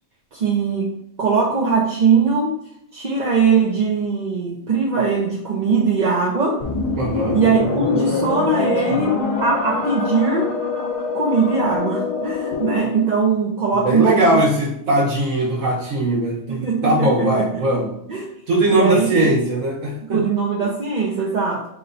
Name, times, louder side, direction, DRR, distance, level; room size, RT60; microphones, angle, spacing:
voice 1, 0.3-0.9 1.2-2.5 2.9-6.6 7.3-10.6 11.1-14.4 16.5-17.5 18.1-18.2 18.7-19.3 20.1-21.7, right 5 dB, 45° right, -3 dB, 0.6 m, -20 dB
sound 1, 6.6-13.1, left 4 dB, 50° left, 0.4 m, -25 dB
voice 2, 7.0-7.4 8.6-9.0 13.7-18.0 18.5-20.3, right 1 dB, 80° right, -3 dB, 1.3 m, -20 dB
5.9 x 2.2 x 3.9 m, 0.74 s
omnidirectional pair, 1.4 m